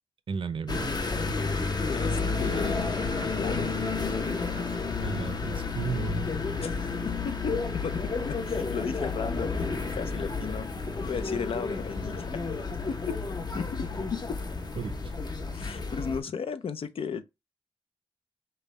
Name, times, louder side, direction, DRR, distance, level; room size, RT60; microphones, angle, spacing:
voice 1, 0.3-0.9 5.0-6.3 14.8-15.1 15.9-16.0, right 5 dB, 65° right, 0.5 m, -34 dB
sound 1, 0.7-16.2, left 4 dB, 50° left, 0.7 m, -31 dB
voice 2, 1.9-3.7 6.6-10.7 11.0-12.4 12.9-13.2 13.5-14.4 15.5-17.2, left 6 dB, 90° left, 0.5 m, -35 dB
5.2 x 2.2 x 4.1 m
wide cardioid pair, 90°, 9 cm